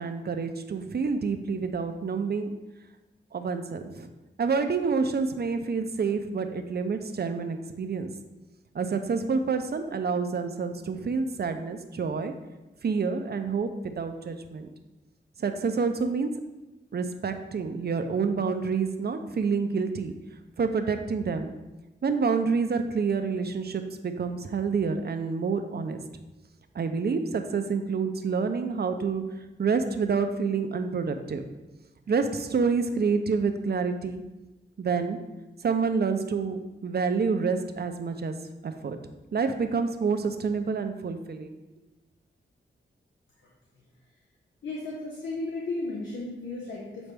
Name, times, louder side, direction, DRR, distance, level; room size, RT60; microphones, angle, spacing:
voice 1, 0.0-2.5 3.3-4.1 4.4-8.1 8.7-12.3 12.8-14.7 15.4-16.3 16.9-20.1 20.6-21.5 22.0-26.0 26.8-29.2 29.6-31.4 32.1-34.2 34.8-35.2 35.6-38.3 38.6-39.0 39.3-41.6, right 5 dB, 55° right, 7 dB, 0.6 m, -28 dB
voice 2, 44.6-47.1, left 2 dB, 70° left, -4 dB, 1.0 m, -34 dB
7.1 x 4.2 x 3.4 m, 1.1 s
wide cardioid pair, 75°, 20 cm